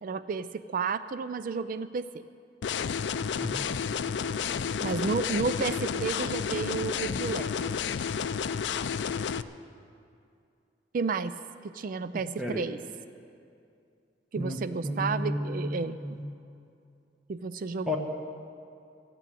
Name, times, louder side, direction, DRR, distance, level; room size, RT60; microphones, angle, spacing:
voice 1, 0.0-2.1 4.8-7.8 10.9-11.3 11.6-12.8 14.3-16.0 17.3-18.0, right 4 dB, 50° right, 13 dB, 0.4 m, -32 dB
sound 1, 2.6-9.4, left 7 dB, 75° left, 0.4 m, -31 dB
voice 2, 14.8-15.7 16.0-16.2 17.9-18.0, left 1 dB, 5° right, 0 dB, 1.1 m, -32 dB
13.0 x 9.3 x 9.0 m, 2.5 s
head